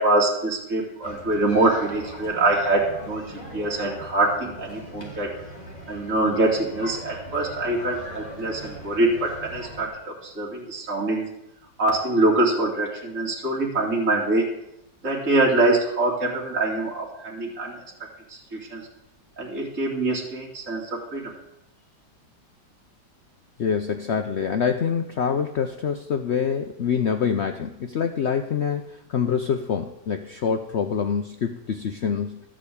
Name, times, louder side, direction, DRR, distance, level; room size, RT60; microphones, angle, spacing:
voice 1, 0.0-3.2 3.5-5.3 5.9-11.3 11.8-14.5 15.0-17.8 18.3-18.9 19.4-21.3, right 2 dB, 45° right, -5 dB, 2.8 m, -24 dB
sound 1, 1.0-9.9, equal, 25° left, 2.7 m, -40 dB
voice 2, 23.6-32.4, left 7 dB, 90° left, 7 dB, 0.5 m, -25 dB
13.0 x 5.0 x 8.4 m, 0.83 s
omnidirectional pair, 2.0 m